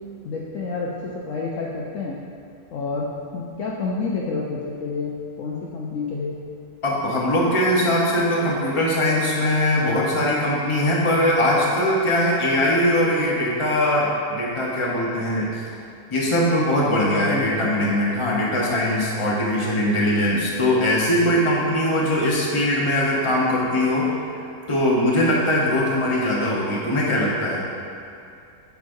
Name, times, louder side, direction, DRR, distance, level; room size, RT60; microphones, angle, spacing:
voice 1, 0.2-2.2 2.7-3.1 3.3-6.4 16.9-17.9, left 4 dB, 65° left, -3 dB, 0.9 m, -29 dB
voice 2, 6.8-15.6 16.1-24.1 24.7-27.6, left 1 dB, 25° left, -5 dB, 0.9 m, -21 dB
9.3 x 5.1 x 2.6 m, 2.5 s
omnidirectional pair, 1.6 m